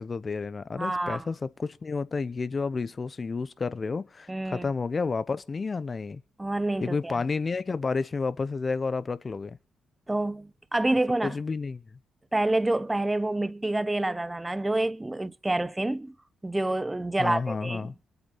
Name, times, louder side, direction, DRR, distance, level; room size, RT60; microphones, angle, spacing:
voice 1, 0.0-6.2 6.8-9.6 11.2-11.8 17.2-17.9, left 4 dB, 40° left, 0.9 m, -30 dB
voice 2, 0.8-1.3 4.3-4.7 6.4-7.2 10.1-11.4 12.3-16.1 16.4-17.9, right 2 dB, 15° right, 1.0 m, -28 dB
25.0 x 8.4 x 4.3 m
hypercardioid pair, 45°, 0 cm